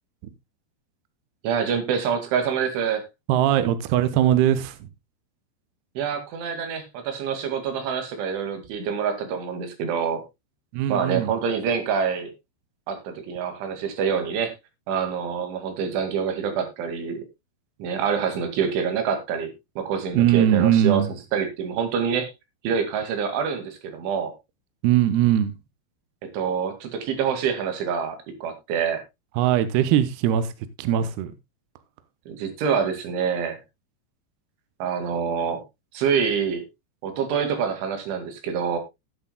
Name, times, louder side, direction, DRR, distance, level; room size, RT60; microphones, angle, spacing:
voice 1, 1.4-3.1 6.0-10.2 10.9-12.3 12.9-14.5 14.9-17.2 17.8-21.0 21.3-22.3 22.6-24.3 26.3-29.0 32.3-33.6 34.8-35.6 35.9-36.7 37.0-38.8, right 6 dB, 90° right, 4.6 m, -26 dB
voice 2, 3.3-4.9 10.7-11.3 20.1-21.1 24.8-25.5 29.4-30.5 30.8-31.3, right 11 dB, 75° right, 2.7 m, -20 dB
17.5 x 8.3 x 2.2 m
omnidirectional pair, 5.3 m